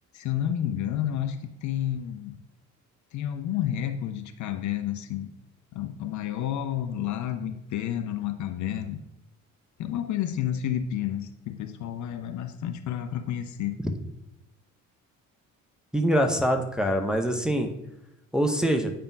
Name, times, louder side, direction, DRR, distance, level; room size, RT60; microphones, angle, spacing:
voice 1, 0.1-2.3 3.1-5.3 5.7-9.0 9.8-13.7, left 10 dB, 45° left, 8 dB, 0.6 m, -30 dB
voice 2, 15.9-17.7 18.3-18.9, equal, ahead, 3 dB, 0.7 m, -24 dB
8.8 x 5.1 x 2.3 m, 0.89 s
figure-of-eight pair, 45°, 41 cm